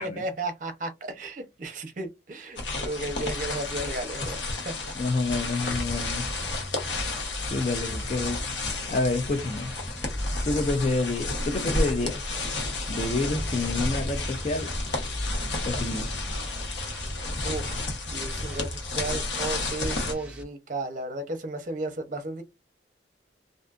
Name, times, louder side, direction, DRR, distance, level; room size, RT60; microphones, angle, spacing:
voice 1, 0.0-4.9 17.4-22.4, right 2 dB, 45° right, 0.7 m, -34 dB
sound 1, 2.6-20.1, left 2 dB, 85° left, 0.9 m, -32 dB
voice 2, 5.0-6.3 7.5-8.4 8.9-9.7 10.4-12.2 12.9-14.7 15.7-16.2, left 2 dB, 35° left, 0.4 m, -28 dB
sound 2, 5.7-10.7 11.7-19.0 19.8-20.4, equal, 5° right, 0.6 m, -38 dB
2.5 x 2.5 x 2.3 m
head